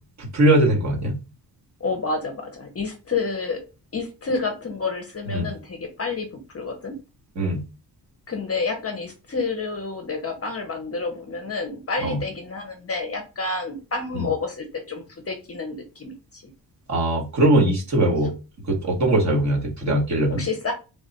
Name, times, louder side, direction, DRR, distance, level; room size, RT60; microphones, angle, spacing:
voice 1, 0.2-1.2 5.3-5.5 7.4-7.6 12.0-12.2 14.1-14.2 16.9-18.3 18.6-20.5, right 1 dB, 40° right, 1.4 m, -21 dB
voice 2, 1.8-3.6 3.9-7.0 8.3-16.5 20.3-20.7, left 4 dB, 35° left, 0.7 m, -29 dB
3.5 x 2.4 x 4.0 m
wide cardioid pair, 130°, 43 cm